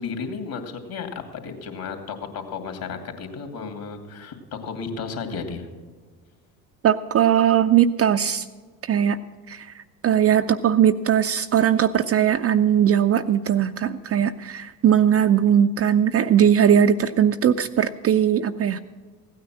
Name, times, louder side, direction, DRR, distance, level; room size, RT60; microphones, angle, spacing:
voice 1, 0.0-5.7, left 5 dB, 50° left, 4 dB, 2.7 m, -33 dB
voice 2, 6.8-8.4 8.9-9.2 9.5-9.7 10.0-18.8, right 9 dB, 30° right, 8 dB, 0.5 m, -19 dB
15.5 x 9.4 x 6.3 m, 1.4 s
hypercardioid pair, 65°, 46 cm